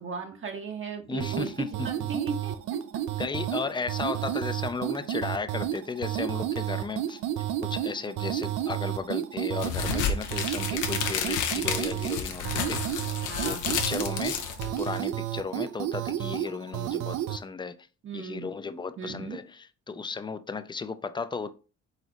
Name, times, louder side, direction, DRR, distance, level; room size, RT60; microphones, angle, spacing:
voice 1, 0.0-2.8 13.3-13.9 18.0-18.5 19.0-19.4, right 4 dB, 40° right, 0.7 m, -36 dB
voice 2, 1.1-1.9 3.2-7.2 7.6-13.1 13.4-17.8 18.1-21.5, left 4 dB, 15° left, 0.3 m, -35 dB
sound 1, 1.2-17.4, right 11 dB, 75° right, 0.5 m, -32 dB
sound 2, 9.6-15.1, left 7 dB, 90° left, 0.8 m, -31 dB
4.0 x 3.9 x 3.0 m
cardioid pair, 90°, 30 cm